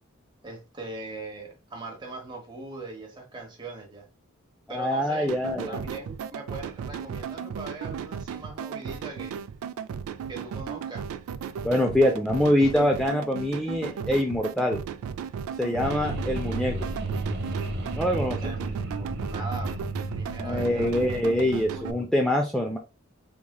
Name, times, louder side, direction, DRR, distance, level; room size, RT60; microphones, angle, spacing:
voice 1, 0.4-4.1 4.7-5.3 5.7-9.4 10.3-11.1 18.4-19.8 20.1-21.9, right 3 dB, 20° right, 1.0 m, -40 dB
voice 2, 4.7-5.8 11.6-14.8 15.6-16.9 18.0-18.4 20.4-22.8, left 1 dB, 5° left, 0.3 m, -24 dB
sound 1, 5.3-21.9, right 7 dB, 90° right, 0.3 m, -36 dB
sound 2, 15.8-22.0, right 2 dB, 50° right, 0.8 m, -33 dB
3.6 x 3.2 x 2.2 m
head